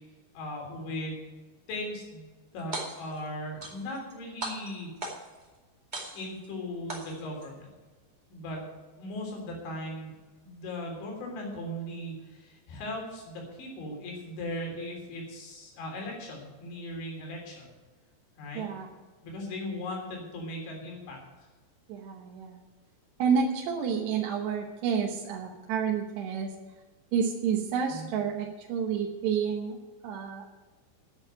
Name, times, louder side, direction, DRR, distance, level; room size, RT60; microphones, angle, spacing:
voice 1, 0.4-1.3 1.7-2.2 2.5-4.9 6.2-7.7 8.3-8.7 9.0-10.1 10.4-17.7 18.4-18.6 19.2-21.2 27.9-28.1, left 1 dB, 85° left, 0 dB, 5.8 m, -38 dB
sound 1, 2.6-3.2 3.6-4.1 4.4-5.4 5.9-6.5 6.9-7.5, right 1 dB, 30° right, 0.7 m, -38 dB
voice 2, 18.5-18.9 21.9-22.6 23.2-26.5 27.1-29.8 30.0-30.5, right 6 dB, 75° right, 0 dB, 3.1 m, -29 dB
10.0 x 8.8 x 9.5 m, 1.3 s
omnidirectional pair, 5.2 m